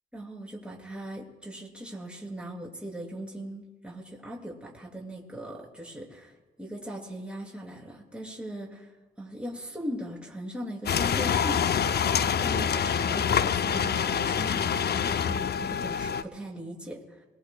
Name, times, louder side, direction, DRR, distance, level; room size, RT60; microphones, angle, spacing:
voice 1, 0.1-6.3 6.6-8.9 9.2-11.6 12.4-17.2, right 1 dB, 5° right, -3 dB, 6.2 m, -39 dB
sound 1, 10.9-16.2, left 7 dB, 55° left, 0.6 m, -26 dB
22.5 x 20.0 x 2.3 m, 1.2 s
supercardioid pair, 55°, 20 cm